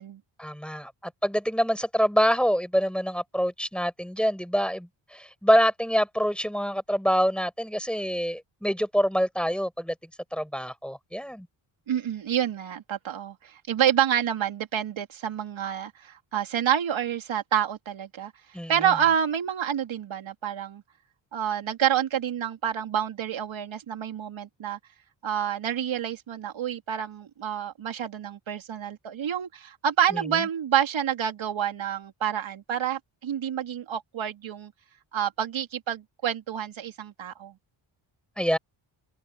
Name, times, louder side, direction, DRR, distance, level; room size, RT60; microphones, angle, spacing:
voice 1, 0.4-9.9 10.3-11.5 18.5-18.9 30.1-30.2 38.4-38.6, equal, ahead, 7.2 m, -26 dB
voice 2, 11.9-18.3 18.7-20.8 21.3-24.8 25.2-34.7 35.1-37.5, right 9 dB, 70° right, 3.4 m, -28 dB
open air
cardioid pair, 65°, 48 cm